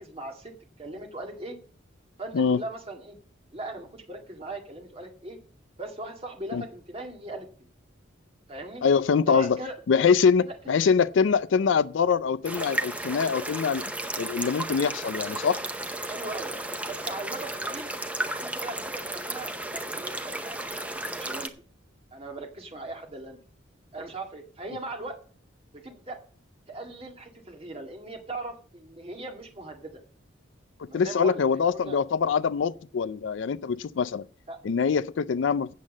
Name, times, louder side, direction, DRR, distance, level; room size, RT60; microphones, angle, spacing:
voice 1, 0.0-1.6 2.2-3.2 3.5-5.4 5.8-7.7 8.5-8.8 9.3-9.8 10.5-10.6 16.1-16.6 16.9-17.9 18.4-21.5 22.1-23.4 23.9-25.2 25.7-26.2 26.7-30.0 30.9-32.0 34.5-34.6, right 2 dB, 30° right, 1.9 m, -39 dB
voice 2, 8.8-9.6 9.9-13.8 14.2-15.6 30.8-34.2 34.6-35.7, left 6 dB, 65° left, 0.4 m, -24 dB
sound 1, 12.4-21.5, right 1 dB, 5° right, 0.7 m, -33 dB
8.3 x 7.4 x 7.3 m
head